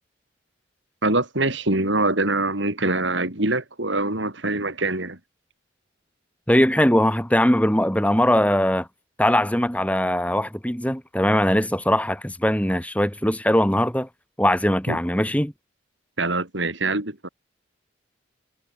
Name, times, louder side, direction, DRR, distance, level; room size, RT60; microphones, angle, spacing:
voice 1, 1.0-5.2 14.9-15.0 16.2-17.3, right 2 dB, 65° right, 4.1 m, -24 dB
voice 2, 6.5-8.9 9.2-14.1 14.4-15.5, left 1 dB, 5° left, 2.2 m, -20 dB
head